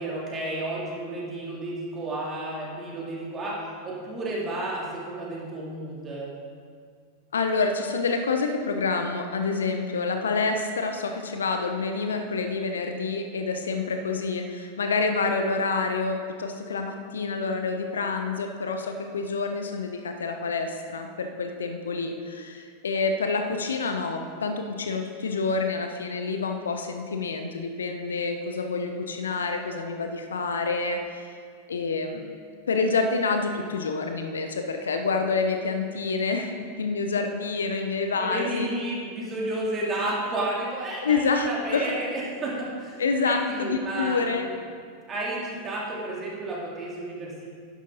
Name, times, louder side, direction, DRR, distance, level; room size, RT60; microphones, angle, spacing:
voice 1, 0.0-3.6 3.8-6.3 38.2-44.6 45.1-47.5, right 1 dB, 25° right, -5 dB, 3.2 m, -32 dB
voice 2, 7.3-31.3 31.7-32.3 32.7-38.7 41.0-41.9 43.0-44.5, left 4 dB, 70° left, 5 dB, 0.9 m, -27 dB
11.5 x 11.0 x 4.1 m, 2.1 s
figure-of-eight pair, 90°, 0 cm